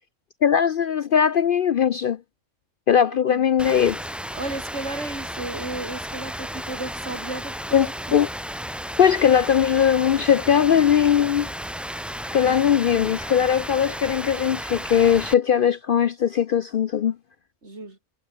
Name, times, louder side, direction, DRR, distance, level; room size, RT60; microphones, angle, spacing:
voice 1, 0.4-2.2 2.9-4.0 7.7-8.3 9.0-11.5 12.3-17.1, left 8 dB, 55° left, 0.6 m, -20 dB
Rain, 3.6-15.3, equal, ahead, 0.7 m, -33 dB
voice 2, 4.3-8.2 12.4-12.6 12.8-13.0 17.6-18.0, right 2 dB, 60° right, 4.6 m, -34 dB
omnidirectional pair, 1.3 m